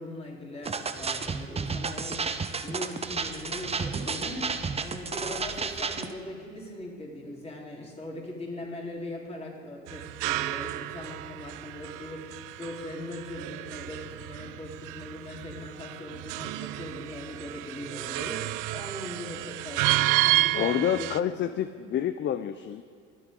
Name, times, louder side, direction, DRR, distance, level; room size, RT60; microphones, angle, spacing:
voice 1, 0.0-2.2 2.6-4.5 4.8-21.1, left 1 dB, 20° left, -3 dB, 3.7 m, -40 dB
sound 1, 0.6-6.1, right 4 dB, 20° right, 0.7 m, -32 dB
sound 2, 3.2-10.5 10.9-11.6, left 5 dB, 85° left, 1.3 m, -52 dB
abstract metal hits JA, 9.9-21.2, right 17 dB, 70° right, 0.5 m, -31 dB
voice 2, 20.5-22.8, left 10 dB, 35° left, 12 dB, 0.5 m, -28 dB
24.5 x 8.2 x 3.8 m, 2.3 s
supercardioid pair, 90°, 32 cm